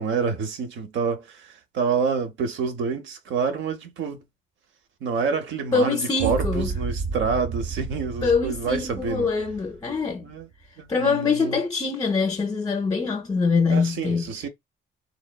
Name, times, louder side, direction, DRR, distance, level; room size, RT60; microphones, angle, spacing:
voice 1, 0.0-4.2 5.0-9.3 10.2-10.5 10.8-11.6 13.7-14.5, right 5 dB, 75° right, 0.7 m, -28 dB
voice 2, 5.7-6.7 8.2-10.2 10.9-14.3, left 4 dB, 20° left, 0.4 m, -24 dB
sound 1, 6.2-10.5, right 4 dB, 40° right, 0.4 m, -32 dB
3.0 x 2.0 x 2.2 m
cardioid pair, 90°, 20 cm